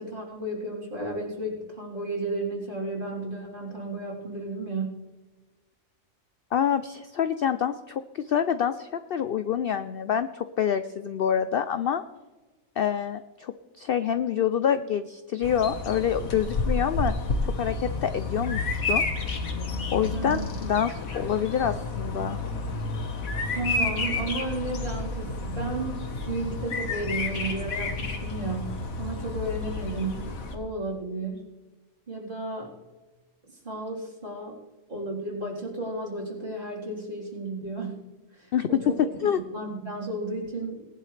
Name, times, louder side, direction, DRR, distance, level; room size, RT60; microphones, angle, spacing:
voice 1, 0.0-4.9 20.1-20.5 23.5-26.0 26.3-31.5 32.1-32.7 33.4-34.6 34.9-38.0 38.3-38.8 39.5-40.8, right 2 dB, 40° right, -4 dB, 4.0 m, -33 dB
voice 2, 6.5-12.0 12.8-17.1 17.5-19.0 19.9-22.4 38.5-38.7 39.2-39.4, left 8 dB, 60° left, 11 dB, 0.6 m, -27 dB
Bird vocalization bird call bird song, 15.4-30.6, left 3 dB, 85° left, 1.8 m, -30 dB
19.5 x 10.5 x 3.3 m, 1.2 s
omnidirectional pair, 1.4 m